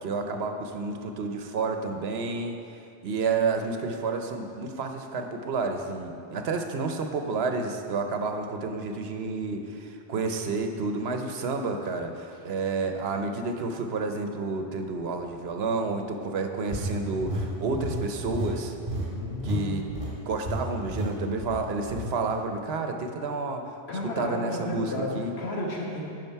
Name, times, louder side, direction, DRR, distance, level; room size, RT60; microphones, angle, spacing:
voice 1, 0.0-2.6 3.0-18.7 19.4-19.8 20.3-23.8 24.2-25.3, right 4 dB, 75° right, 5 dB, 1.0 m, -30 dB
sound 1, 16.7-19.6 19.9-20.1 20.5-20.6 20.9-21.1 21.4-22.1, equal, 25° right, 2.4 m, -31 dB
voice 2, 19.1-19.8 23.9-26.0, left 1 dB, 85° left, -3 dB, 1.6 m, -33 dB
11.0 x 5.4 x 4.5 m, 2.7 s
omnidirectional pair, 1.1 m